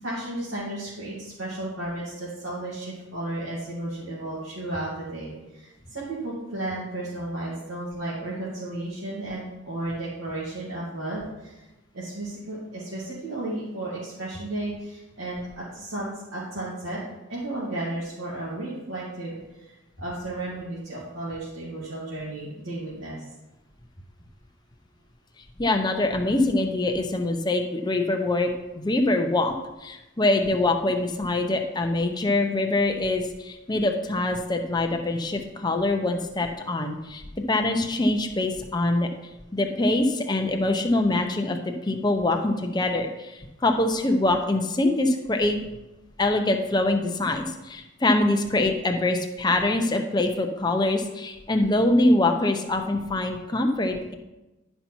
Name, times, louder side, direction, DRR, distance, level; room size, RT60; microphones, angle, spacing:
voice 1, 0.0-11.7 11.9-17.0 17.3-23.2, right 1 dB, 85° right, -9 dB, 2.5 m, -33 dB
voice 2, 25.6-28.5 28.8-29.5 29.8-37.2 37.5-39.1 39.5-45.6 46.2-54.1, left 2 dB, 20° left, 4 dB, 0.8 m, -24 dB
11.0 x 5.6 x 4.5 m, 1.0 s
head